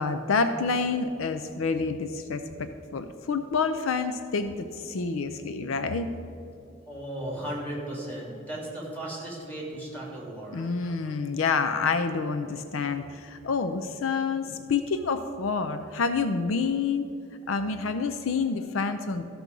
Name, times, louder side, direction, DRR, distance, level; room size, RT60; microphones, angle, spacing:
voice 1, 0.0-6.1 10.5-17.1 17.5-19.2, left 4 dB, 70° left, 9 dB, 0.5 m, -28 dB
voice 2, 6.9-10.7, right 1 dB, 10° left, -5 dB, 2.8 m, -36 dB
13.5 x 6.1 x 5.3 m, 2.7 s
head